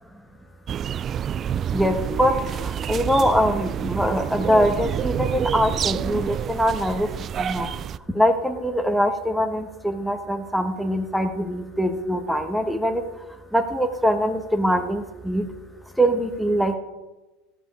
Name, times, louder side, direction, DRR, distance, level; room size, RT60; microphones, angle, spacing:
sound 1, 0.7-8.0, right 9 dB, 35° right, 0.4 m, -28 dB
voice 1, 1.7-2.3 2.6-7.1 7.4-7.7 8.1-13.0 13.5-15.5 16.0-16.7, equal, ahead, 6 dB, 1.4 m, -23 dB
15.0 x 5.4 x 8.6 m, 1.1 s
supercardioid pair, 100°, 0 cm